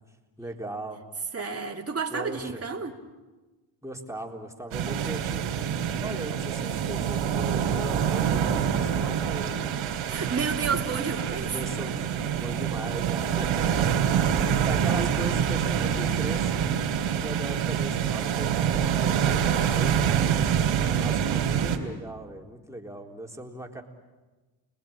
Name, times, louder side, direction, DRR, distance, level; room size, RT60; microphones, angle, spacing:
voice 1, 0.4-1.0 2.1-2.6 3.8-5.4 6.0-9.7 10.0-10.3 11.2-11.9 12.4-13.9 14.3-16.6 17.2-20.3 21.0-23.8, right 1 dB, 5° right, 1 dB, 3.9 m, -39 dB
voice 2, 1.3-3.0 10.0-11.5 14.8-15.1, right 5 dB, 30° right, -1 dB, 3.1 m, -31 dB
sound 1, 4.7-21.8, right 8 dB, 90° right, 3.6 m, -26 dB
30.0 x 20.5 x 8.8 m, 1.2 s
cardioid pair, 80°, 48 cm